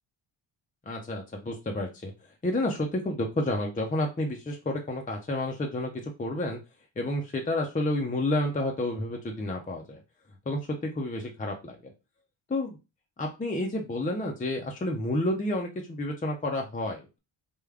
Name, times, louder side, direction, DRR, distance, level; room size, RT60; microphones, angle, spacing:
voice 1, 0.9-2.1 2.4-5.9 6.2-6.6 7.0-10.0 10.5-11.8 12.5-12.8 13.2-17.2, left 1 dB, 20° left, 2 dB, 0.5 m, -30 dB
3.5 x 2.2 x 3.4 m, 0.28 s
wide cardioid pair, 100°, 48 cm